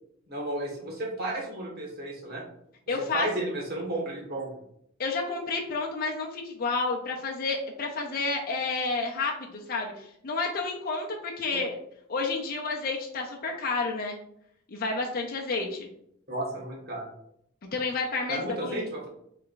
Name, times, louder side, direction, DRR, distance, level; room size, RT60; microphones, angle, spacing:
voice 1, 0.3-2.4 3.1-4.5 16.3-17.1 18.3-19.1, right 1 dB, 50° right, -2 dB, 1.3 m, -33 dB
voice 2, 2.9-3.3 5.0-11.7 12.1-14.2 14.7-15.9 17.7-18.9, left 3 dB, 45° left, 0 dB, 0.6 m, -30 dB
3.5 x 3.3 x 3.9 m, 0.72 s
head